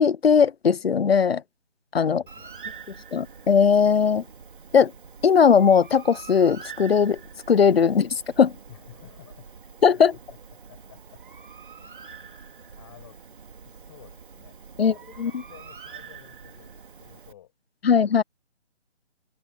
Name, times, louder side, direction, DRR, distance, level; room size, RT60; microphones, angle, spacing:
voice 1, 0.0-1.4 1.9-2.2 3.1-4.2 4.7-4.9 5.2-7.2 7.5-8.5 9.8-10.1 14.8-15.3 17.8-18.2, left 6 dB, 60° left, 0.6 m, -19 dB
voice 2, 2.0-2.8 8.7-9.7 10.1-10.2 10.7-12.3 12.7-13.2 13.7-17.5, left 12 dB, 20° left, 7.7 m, -52 dB
Bird, 2.3-17.3, right 6 dB, 45° right, 2.5 m, -45 dB
figure-of-eight pair, 165°, 35 cm